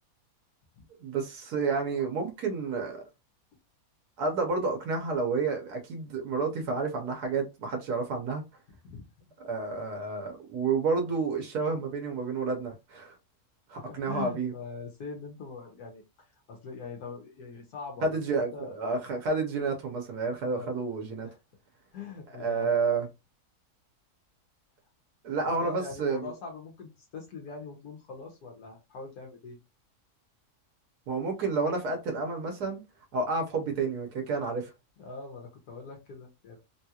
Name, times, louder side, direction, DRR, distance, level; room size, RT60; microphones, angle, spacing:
voice 1, 1.0-3.0 4.2-8.4 9.4-13.1 13.7-14.5 18.0-21.3 22.4-23.1 25.2-26.2 31.1-32.8 33.1-34.7, right 4 dB, 85° right, 1.4 m, -30 dB
voice 2, 13.7-18.8 20.4-20.7 21.2-21.4 21.9-22.7 25.6-29.6 35.0-36.6, left 4 dB, 80° left, 1.4 m, -42 dB
3.5 x 2.3 x 2.8 m
omnidirectional pair, 1.6 m